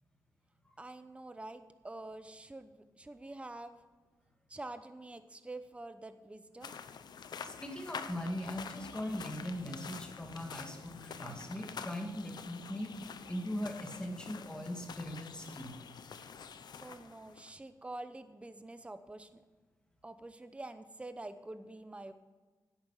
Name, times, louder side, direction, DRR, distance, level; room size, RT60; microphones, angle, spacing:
voice 1, 0.8-3.8 4.5-6.8 16.8-19.4 20.0-22.1, right 2 dB, 15° right, 10 dB, 0.8 m, -47 dB
sound 1, 6.6-17.5, left 6 dB, 70° left, 0.7 m, -47 dB
voice 2, 7.4-12.9 13.3-15.8, equal, 10° left, 2 dB, 2.0 m, -40 dB
10.5 x 8.6 x 5.7 m, 1.3 s
cardioid pair, 90°, 7 cm